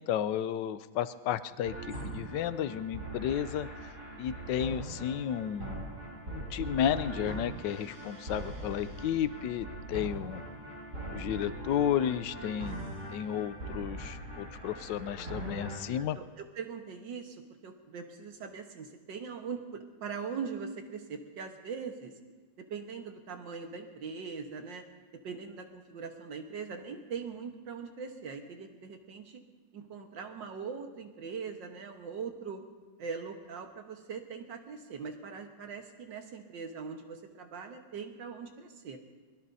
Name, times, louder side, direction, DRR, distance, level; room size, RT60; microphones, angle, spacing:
voice 1, 0.0-3.7 4.2-5.9 6.3-10.4 11.1-12.8 13.1-16.2, left 10 dB, 80° left, 14 dB, 1.3 m, -32 dB
sound 1, 1.6-15.8, right 1 dB, 60° right, 4.0 m, -41 dB
voice 2, 15.9-22.1 22.6-24.8 25.1-29.4 29.7-32.6 33.0-39.0, right 5 dB, 85° right, 4 dB, 2.0 m, -41 dB
23.5 x 21.5 x 2.7 m, 1.3 s
omnidirectional pair, 1.9 m